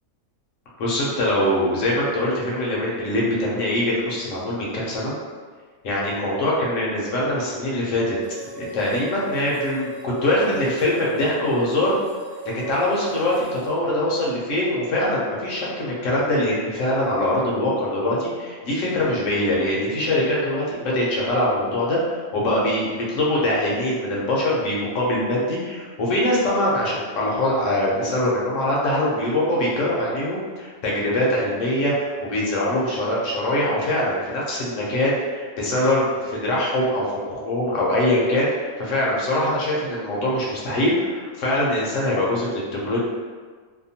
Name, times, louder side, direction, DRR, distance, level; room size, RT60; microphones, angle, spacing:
voice 1, 0.8-5.1 5.8-8.2 8.6-12.0 12.5-43.0, left 1 dB, 65° left, -5 dB, 0.9 m, -23 dB
sound 1, 8.2-13.7, right 2 dB, 60° right, 0.9 m, -39 dB
2.8 x 2.2 x 2.7 m, 1.5 s
omnidirectional pair, 1.6 m